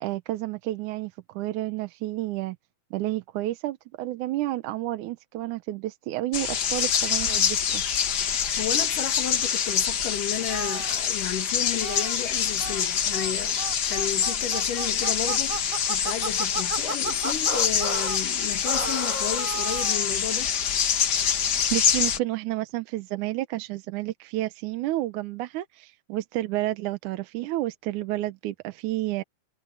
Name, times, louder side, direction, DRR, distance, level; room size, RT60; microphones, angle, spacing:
voice 1, 0.0-2.6 2.9-7.8 21.7-29.2, right 16 dB, 75° right, 2.2 m, -30 dB
sound 1, 6.3-22.2, left 7 dB, 65° left, 1.0 m, -26 dB
voice 2, 8.6-20.6, left 10 dB, 85° left, 3.5 m, -33 dB
sound 2, 10.5-11.0 11.8-12.2 12.6-12.8 13.1-13.3 13.6-18.2 18.6-20.1, right 2 dB, 10° right, 3.5 m, -33 dB
omnidirectional pair, 3.6 m